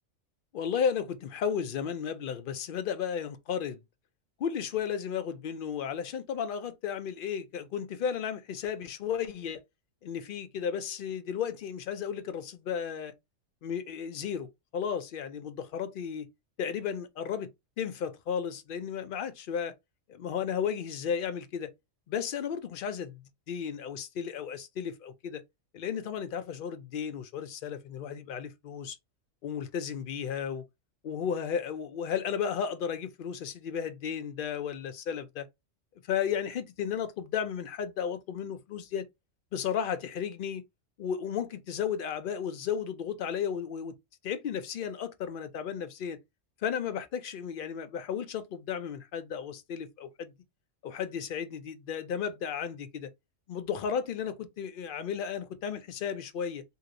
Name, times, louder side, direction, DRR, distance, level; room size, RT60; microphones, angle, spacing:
voice 1, 0.5-3.8 4.4-9.6 10.0-13.1 13.6-16.3 16.6-17.5 17.8-19.7 20.1-21.7 22.1-25.4 25.7-29.0 29.4-30.6 31.0-35.5 36.1-39.1 39.5-40.6 41.0-43.9 44.2-46.2 46.6-50.3 50.8-53.1 53.5-56.6, left 7 dB, 60° left, 0.5 m, -34 dB
3.0 x 2.8 x 2.5 m
omnidirectional pair, 1.3 m